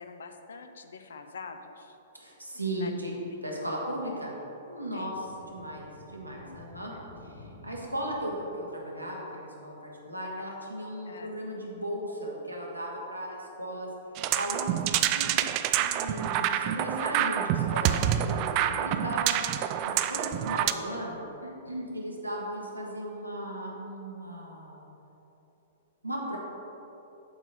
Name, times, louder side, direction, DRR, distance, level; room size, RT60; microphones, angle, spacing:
voice 1, 0.0-2.0 2.7-2.9 3.3-3.7 4.9-5.1 6.7-7.1 11.0-11.4 18.1-18.6, left 4 dB, 65° left, 7 dB, 0.6 m, -46 dB
voice 2, 2.1-3.1 3.4-4.3 4.7-6.9 7.2-13.9 14.3-14.8 15.1-15.5 15.8-19.4 19.9-24.8 26.0-26.4, equal, 90° right, -3 dB, 1.4 m, -36 dB
sound 1, 4.8-8.6, left 2 dB, 85° left, 1.8 m, -51 dB
sound 2, 14.2-20.7, right 11 dB, 35° right, 0.3 m, -27 dB
7.9 x 4.0 x 6.2 m, 3.0 s
figure-of-eight pair, 110°, 0 cm